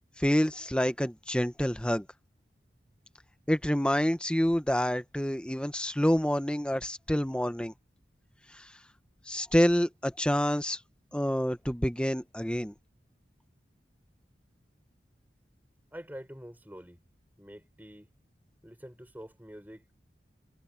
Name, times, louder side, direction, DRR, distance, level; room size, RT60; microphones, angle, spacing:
voice 1, 0.2-2.0 3.5-7.7 8.5-8.6 9.3-10.8 11.1-12.7, equal, 5° left, 0.9 m, -27 dB
voice 2, 15.9-17.0 17.4-18.1 18.6-19.9, equal, 10° right, 5.8 m, -46 dB
head